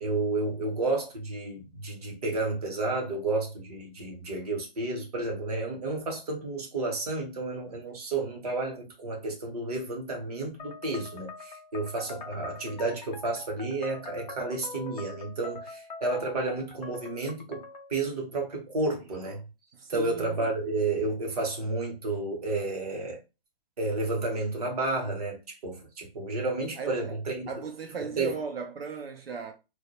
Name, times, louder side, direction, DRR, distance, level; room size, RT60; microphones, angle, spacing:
voice 1, 0.0-17.6 17.9-19.4 19.9-23.2 23.8-27.5 28.2-28.4, right 2 dB, 40° right, 0.8 m, -31 dB
sound 1, 10.6-18.0, left 4 dB, 50° left, 0.5 m, -44 dB
voice 2, 19.7-20.5 26.8-27.2 27.5-29.5, right 5 dB, 80° right, 0.6 m, -37 dB
2.1 x 2.1 x 2.7 m
hypercardioid pair, 170°, 30 cm